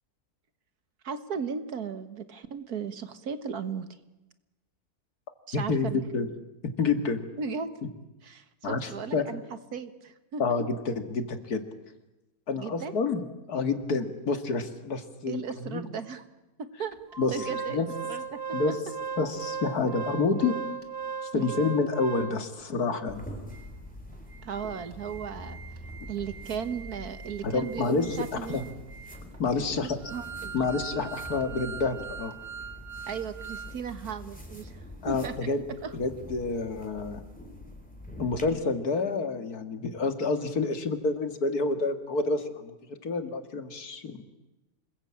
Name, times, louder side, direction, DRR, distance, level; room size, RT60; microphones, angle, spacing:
voice 1, 1.0-3.9 5.5-6.0 7.4-7.7 8.2-9.4 9.7-10.4 12.6-12.9 15.3-16.2 16.6-17.0 17.3-18.7 21.3-21.5 24.4-25.6 26.1-28.7 29.5-29.6 30.1-30.5 33.1-34.8 35.1-35.4 35.8-36.0, right 6 dB, 75° right, 11 dB, 1.9 m, -36 dB
voice 2, 5.5-6.3 6.6-7.3 8.6-9.2 10.4-11.6 12.5-13.2 13.5-15.8 17.2-17.4 17.7-17.9 18.5-18.8 19.2-20.6 21.2-23.2 27.4-28.1 28.5-28.6 29.4-30.0 30.5-32.3 35.0-35.6 35.9-37.2 38.2-42.8 43.0-44.3, left 4 dB, 80° left, 8 dB, 2.4 m, -28 dB
Organ, 17.1-22.6 23.2-23.3 23.5-23.7 24.1-33.7 34.0-34.2, right 6 dB, 40° right, 2.3 m, -39 dB
sound 1, 23.1-38.4, left 1 dB, 5° left, 4.0 m, -45 dB
27.0 x 20.5 x 8.8 m, 1.0 s
omnidirectional pair, 1.6 m